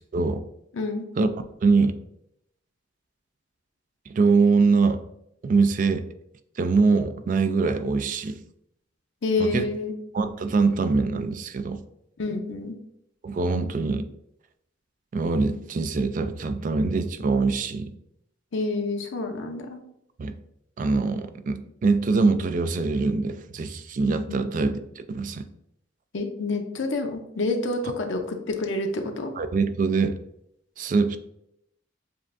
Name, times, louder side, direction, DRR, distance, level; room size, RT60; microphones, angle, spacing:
voice 1, 0.1-0.4 1.2-1.3 1.6-2.0 4.1-5.0 5.4-6.1 6.6-8.4 9.4-9.7 10.1-11.8 13.2-14.1 15.1-17.9 20.2-20.4 20.8-24.8 25.1-25.4 29.4-30.2 30.8-31.2, right 4 dB, 45° right, 10 dB, 0.3 m, -23 dB
voice 2, 0.7-1.1 9.2-9.9 12.2-12.7 18.5-19.8 24.3-24.4 26.1-29.3, left 3 dB, 85° left, 4 dB, 0.6 m, -28 dB
7.2 x 2.5 x 2.5 m, 0.78 s
head